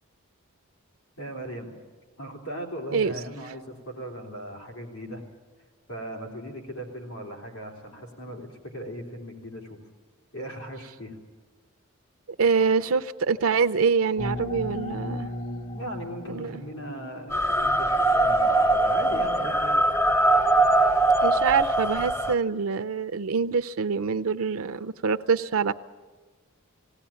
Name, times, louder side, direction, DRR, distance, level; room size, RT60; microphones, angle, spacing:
voice 1, 1.2-1.8 2.2-5.2 5.9-9.8 10.3-11.2 15.7-19.8, equal, 90° left, 1 dB, 3.6 m, -38 dB
voice 2, 12.4-15.3 16.3-16.6 21.2-25.7, right 5 dB, 70° right, 10 dB, 0.5 m, -25 dB
sound 1, 14.2-17.7, left 1 dB, 35° left, 0.9 m, -36 dB
sound 2, 17.3-22.3, right 2 dB, 10° left, 0.6 m, -22 dB
19.0 x 18.0 x 8.7 m, 1.3 s
head